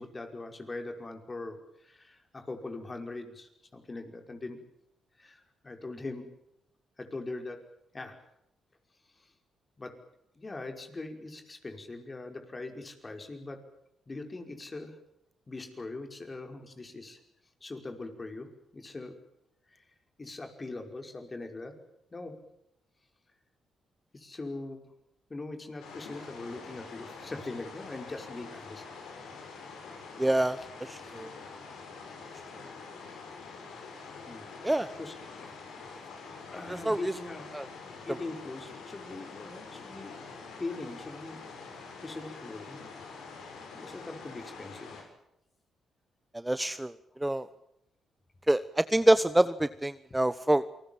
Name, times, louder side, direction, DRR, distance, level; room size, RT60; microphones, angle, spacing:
voice 1, 0.0-4.6 5.2-6.3 7.0-7.6 7.9-8.2 9.2-9.3 9.8-10.0 10.4-13.6 14.1-15.0 15.5-17.2 17.6-19.2 19.7-19.8 20.2-21.7 22.1-22.4 24.1-24.9 25.3-28.8 30.6-30.7 31.0-31.2 34.3-34.6 35.0-35.6 36.5-37.5 37.8-40.1 40.6-41.4 41.7-42.8 43.7-44.9, left 2 dB, 30° left, 5 dB, 5.4 m, -41 dB
sound 1, 25.8-45.0, left 4 dB, 80° left, 6.7 m, -46 dB
voice 2, 30.2-30.6 30.9-31.3 34.6-34.9 36.8-37.0 37.5-37.6 46.4-46.9 47.2-47.5 48.5-50.6, right 1 dB, 15° right, 14 dB, 1.0 m, -25 dB
28.5 x 20.5 x 7.3 m, 0.81 s
supercardioid pair, 50°, 0 cm